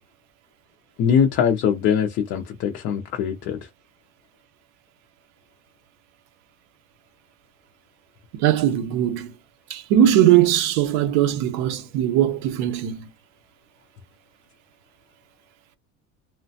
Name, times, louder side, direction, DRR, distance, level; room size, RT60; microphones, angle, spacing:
voice 1, 1.0-3.6, left 8 dB, 35° left, 0.4 m, -22 dB
voice 2, 8.3-9.3 9.7-13.1, right 11 dB, 70° right, 0.8 m, -20 dB
3.1 x 2.1 x 2.7 m
cardioid pair, 175°, 35 cm